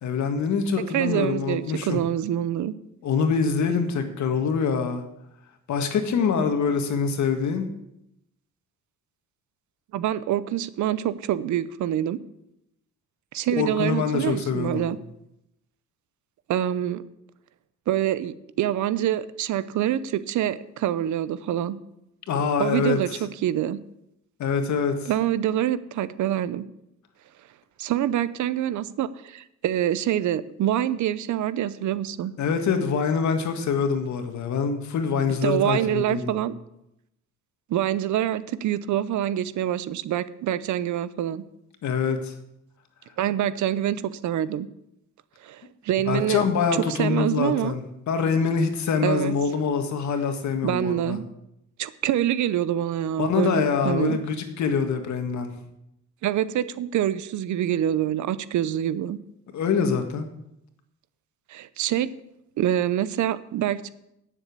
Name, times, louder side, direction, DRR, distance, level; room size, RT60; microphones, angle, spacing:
voice 1, 0.0-2.0 3.0-5.0 5.7-7.6 13.5-14.9 22.3-23.2 24.4-25.1 32.4-36.4 41.8-42.3 46.1-51.2 53.2-55.5 59.5-60.3, left 6 dB, 70° left, 6 dB, 1.9 m, -25 dB
voice 2, 0.9-2.7 9.9-12.2 13.3-15.0 16.5-17.0 17.9-21.8 22.6-23.8 25.1-26.7 27.8-32.3 35.4-36.5 37.7-41.4 43.2-44.7 45.4-46.4 46.9-47.7 49.0-49.3 50.6-51.2 51.8-54.2 56.2-59.2 61.5-62.1 62.6-63.9, right 11 dB, 75° right, 16 dB, 0.8 m, -26 dB
10.0 x 7.2 x 8.5 m, 0.82 s
cardioid pair, 90°, 30 cm